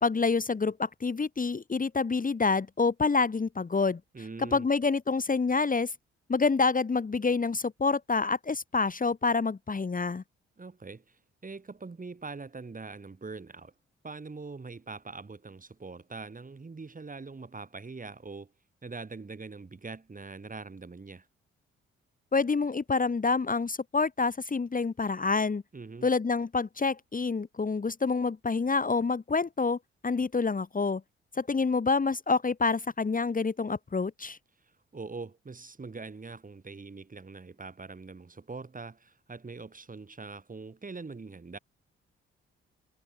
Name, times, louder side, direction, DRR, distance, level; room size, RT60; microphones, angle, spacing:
voice 1, 0.0-4.0 4.4-5.9 6.3-10.2 22.3-25.6 26.0-31.0 31.4-34.4, left 4 dB, 30° left, 1.5 m, -27 dB
voice 2, 4.1-4.7 10.6-13.7 14.0-18.5 18.8-21.3 25.7-26.1 34.9-41.6, right 4 dB, 30° right, 2.5 m, -43 dB
hypercardioid pair, 45°, 29 cm